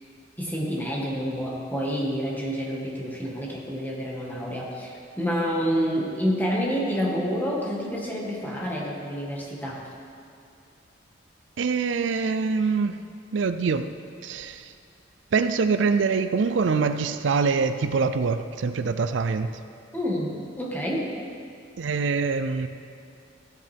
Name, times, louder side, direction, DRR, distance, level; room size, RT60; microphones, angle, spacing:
voice 1, 0.4-9.8 19.9-21.1, equal, 10° left, -4 dB, 1.6 m, -28 dB
voice 2, 11.6-13.0 13.3-13.9 14.2-14.7 15.3-19.5 21.8-22.7, right 5 dB, 85° right, 10 dB, 0.4 m, -24 dB
14.5 x 8.2 x 3.5 m, 2.5 s
head